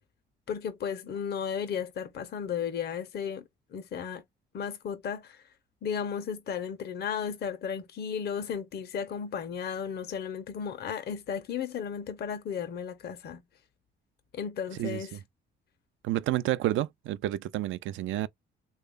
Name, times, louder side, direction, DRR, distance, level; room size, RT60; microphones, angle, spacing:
voice 1, 0.5-3.4 3.7-4.2 4.5-5.4 5.8-13.4 14.3-15.2, left 7 dB, 55° left, 0.6 m, -34 dB
voice 2, 16.0-18.3, right 14 dB, 80° right, 0.4 m, -30 dB
3.3 x 2.2 x 3.6 m
cardioid pair, 90°, 20 cm